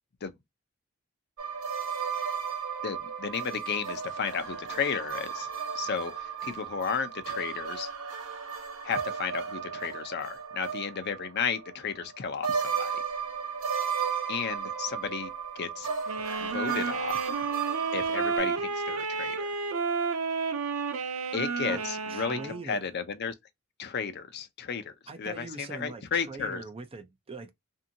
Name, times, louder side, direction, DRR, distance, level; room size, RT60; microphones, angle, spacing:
sound 1, 1.4-12.2 12.4-18.4, right 6 dB, 70° right, 1.2 m, -34 dB
voice 1, 2.8-5.5 5.7-7.9 8.8-13.0 14.3-15.9 16.4-17.3 17.9-19.5 21.3-23.3 23.8-24.9 25.2-26.6, left 6 dB, 50° left, 0.5 m, -33 dB
sound 2, 16.1-22.6, right 4 dB, 85° right, 0.6 m, -31 dB
voice 2, 21.6-22.9 25.1-27.5, right 3 dB, 25° right, 0.5 m, -42 dB
2.7 x 2.6 x 2.6 m
head